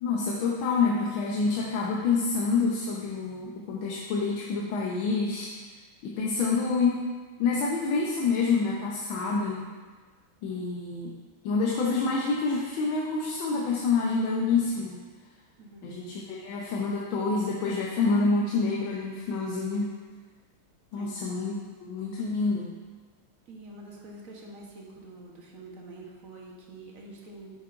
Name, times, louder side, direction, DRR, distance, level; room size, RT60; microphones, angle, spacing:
voice 1, 0.0-5.5 6.0-7.1 7.4-9.7 10.4-11.1 11.4-15.0 15.8-19.9 20.9-21.5 21.8-22.7, left 4 dB, 75° left, -4 dB, 1.6 m, -27 dB
voice 2, 15.6-15.9 20.9-21.2 23.5-27.6, right 2 dB, 45° right, -2 dB, 1.3 m, -46 dB
9.1 x 7.4 x 2.6 m, 1.4 s
omnidirectional pair, 2.3 m